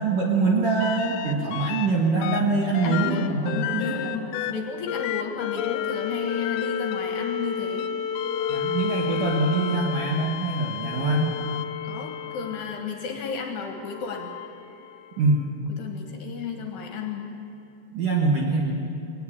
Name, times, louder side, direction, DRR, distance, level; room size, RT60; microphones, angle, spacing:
voice 1, 0.0-4.1 8.5-11.4 15.2-15.4 17.9-18.7, right 3 dB, 60° right, -1 dB, 2.2 m, -24 dB
sound 1, 0.8-1.9 2.2-13.0 13.8-15.4 17.1-17.2, left 9 dB, 80° left, 3.3 m, -31 dB
voice 2, 2.8-7.9 11.8-14.3 15.8-17.3, left 6 dB, 65° left, 3 dB, 3.1 m, -33 dB
21.0 x 18.5 x 8.8 m, 2.6 s
omnidirectional pair, 5.9 m